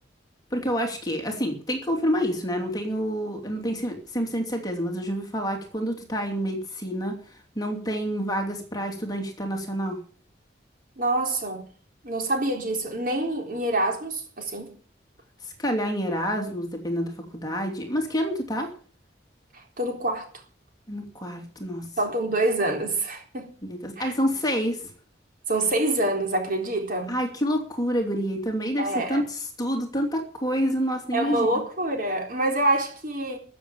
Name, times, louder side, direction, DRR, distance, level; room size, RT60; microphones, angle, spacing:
voice 1, 0.5-7.2 7.6-10.0 15.4-18.7 20.9-21.9 23.6-24.9 27.1-31.6, equal, 20° left, 2.8 m, -28 dB
voice 2, 11.0-11.6 12.0-14.7 19.5-20.3 22.0-23.5 24.0-24.1 25.5-27.1 28.8-29.2 31.1-33.4, right 1 dB, 50° right, 4.0 m, -26 dB
14.0 x 7.4 x 8.9 m
head